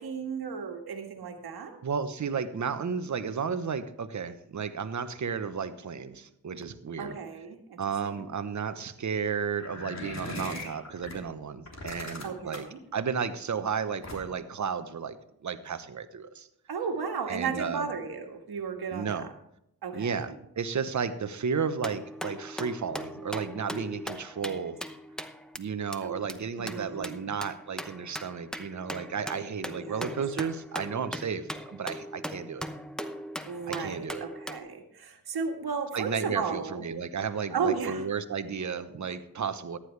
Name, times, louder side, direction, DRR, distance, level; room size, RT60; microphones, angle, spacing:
voice 1, 0.0-1.8 7.0-7.8 8.0-8.3 12.2-12.8 16.7-19.3 19.8-20.4 24.1-24.6 26.0-26.2 26.6-27.3 29.7-30.2 33.4-36.9 37.5-38.1 39.0-39.2, right 5 dB, 80° right, 4 dB, 1.8 m, -34 dB
voice 2, 1.8-7.2 7.8-12.7 12.9-15.2 15.4-16.5 17.3-17.9 18.9-19.3 19.9-24.8 25.6-32.7 33.7-34.2 35.9-39.8, right 6 dB, 50° right, 11 dB, 1.0 m, -33 dB
sound 1, 9.6-11.2 11.7-12.8 14.0-14.5, left 2 dB, 45° left, 3.1 m, -39 dB
sound 2, 21.8-25.6 25.9-26.0 26.3-26.4 26.7-34.6, equal, ahead, 0.8 m, -39 dB
14.5 x 10.0 x 3.3 m, 0.76 s
cardioid pair, 70°, 37 cm